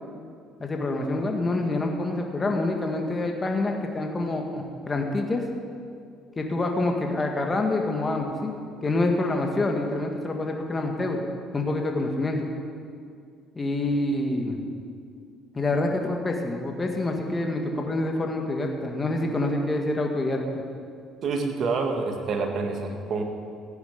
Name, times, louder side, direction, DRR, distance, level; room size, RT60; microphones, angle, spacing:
voice 1, 0.6-5.4 6.4-8.5 8.8-11.2 11.5-12.5 13.6-14.6 15.5-20.6, left 2 dB, 25° left, 2 dB, 1.8 m, -27 dB
voice 2, 21.2-23.2, right 4 dB, 55° right, 3 dB, 1.9 m, -27 dB
15.5 x 9.4 x 5.2 m, 2.3 s
supercardioid pair, 80°, 0 cm